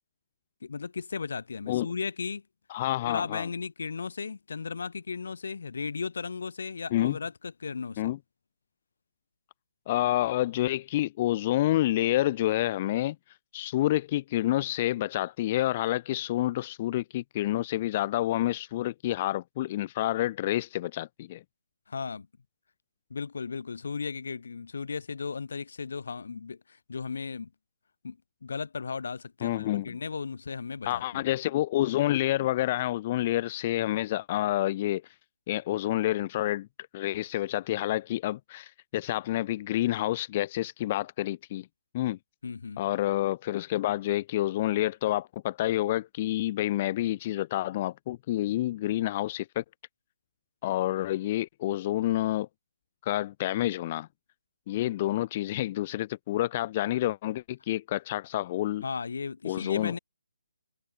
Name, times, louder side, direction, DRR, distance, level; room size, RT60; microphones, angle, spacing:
voice 1, 0.6-2.4 3.1-8.1 21.9-22.3 23.1-27.5 28.0-31.3 42.4-42.8 58.8-60.0, left 5 dB, 65° left, 2.5 m, -36 dB
voice 2, 2.7-3.5 6.9-7.2 8.0-8.2 9.9-13.1 13.5-21.4 29.4-30.0 30.8-35.0 35.5-36.7 36.9-41.7 41.9-42.2 42.8-49.6 50.6-52.5 53.0-54.1 54.7-58.8 59.4-60.0, left 15 dB, 30° left, 1.4 m, -28 dB
hypercardioid pair, 160°, 0 cm